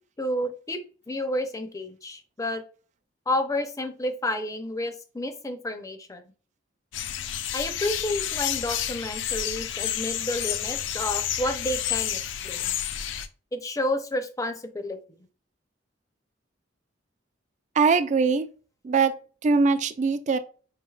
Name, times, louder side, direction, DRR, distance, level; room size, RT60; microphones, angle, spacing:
voice 1, 0.2-2.6 3.3-6.2 7.5-12.8 13.5-15.0, left 1 dB, 20° left, 0.5 m, -30 dB
sound 1, 6.9-13.3, left 10 dB, 75° left, 0.4 m, -30 dB
voice 2, 17.8-18.5 18.8-19.1 19.4-20.4, right 4 dB, 40° right, 0.3 m, -21 dB
5.0 x 3.3 x 2.3 m
head